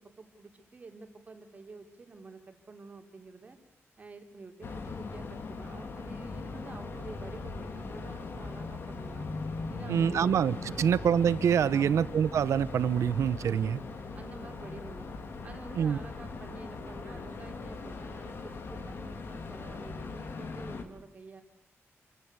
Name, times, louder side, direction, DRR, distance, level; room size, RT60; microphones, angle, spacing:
voice 1, 0.0-3.6 4.0-9.3 9.7-10.4 10.7-10.9 11.7-12.0 13.4-13.7 14.2-15.1 15.4-21.4, right 3 dB, 30° right, 4 dB, 3.6 m, -49 dB
sound 1, 4.6-20.8, left 3 dB, 50° left, 3.2 m, -40 dB
voice 2, 9.9-13.8 15.8-16.0, right 8 dB, 80° right, 16 dB, 1.1 m, -26 dB
29.0 x 25.0 x 8.3 m, 0.74 s
wide cardioid pair, 175°, 5 cm